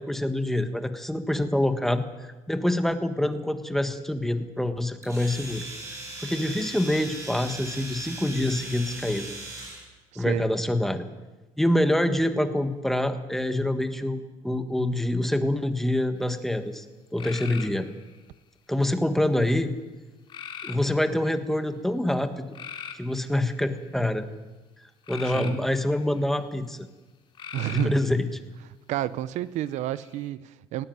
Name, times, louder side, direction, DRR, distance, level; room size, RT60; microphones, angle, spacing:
voice 1, 0.0-5.6 6.2-9.3 10.1-11.0 11.6-16.8 17.1-17.9 18.7-19.7 20.6-22.5 23.0-24.2 25.1-26.9 27.7-28.3, left 1 dB, ahead, 8 dB, 1.5 m, -26 dB
Domestic sounds home sounds, 5.0-9.9, right 2 dB, 25° right, 6.0 m, -38 dB
voice 2, 10.1-10.5 25.3-25.6 27.5-28.0 28.9-30.8, right 13 dB, 70° right, 16 dB, 0.8 m, -30 dB
sound 1, 17.2-18.2 20.3-21.1 22.5-23.8 25.1-26.2 27.3-28.0 29.7-30.3, left 7 dB, 40° left, 2.6 m, -40 dB
18.5 x 18.0 x 9.3 m, 1.2 s
cardioid pair, 150°, 13 cm